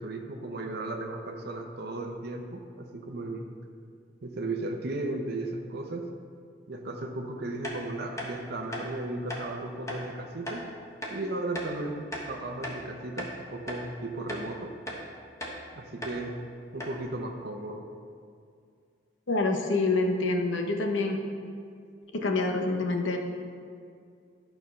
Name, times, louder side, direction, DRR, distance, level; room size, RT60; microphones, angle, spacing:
voice 1, 0.0-3.5 4.2-6.1 6.7-10.6 11.1-14.7 15.7-16.3 16.7-17.8, right 2 dB, 55° right, 2 dB, 0.8 m, -35 dB
sound 1, 7.6-7.8 8.2-8.3 8.7-8.9 9.3-9.4 9.9-10.0 10.5-10.6 11.0-11.2 11.5-11.7 12.1-12.8 13.2-13.3 13.7-13.8 14.3-14.5 14.9-15.0 15.4-15.6 16.0-16.2 16.5-16.6 16.8-17.0, left 1 dB, 15° left, 1.2 m, -37 dB
voice 2, 19.3-21.2 22.1-23.2, left 3 dB, 85° left, 3 dB, 0.9 m, -26 dB
11.5 x 4.5 x 5.5 m, 2.3 s
head